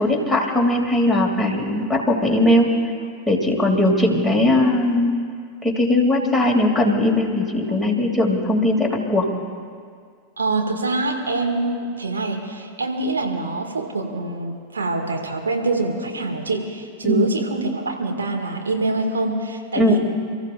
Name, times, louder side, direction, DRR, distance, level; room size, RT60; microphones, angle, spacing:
voice 1, 0.0-2.7 3.3-5.1 5.6-9.3 17.1-17.3 19.8-20.0, left 1 dB, ahead, 1 dB, 2.9 m, -19 dB
voice 2, 10.4-20.0, right 3 dB, 70° right, 2 dB, 2.1 m, -25 dB
30.0 x 14.5 x 2.6 m, 2.1 s
figure-of-eight pair, 90°, 0 cm